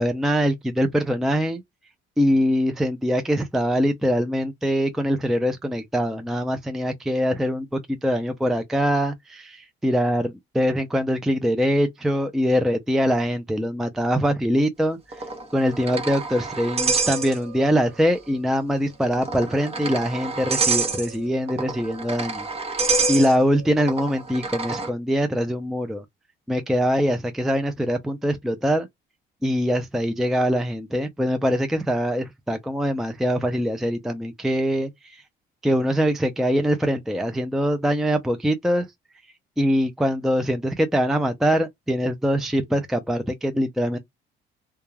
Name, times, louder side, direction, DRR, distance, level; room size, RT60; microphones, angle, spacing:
voice 1, 0.0-1.6 2.2-15.0 15.5-22.5 23.1-26.0 26.5-28.9 29.4-35.2 35.6-38.9 39.6-44.0, equal, ahead, 0.4 m, -23 dB
sound 1, 15.1-17.8 18.1-18.2 19.0-24.9, right 4 dB, 30° right, 0.7 m, -27 dB
2.3 x 2.2 x 3.1 m
cardioid pair, 105°, 20 cm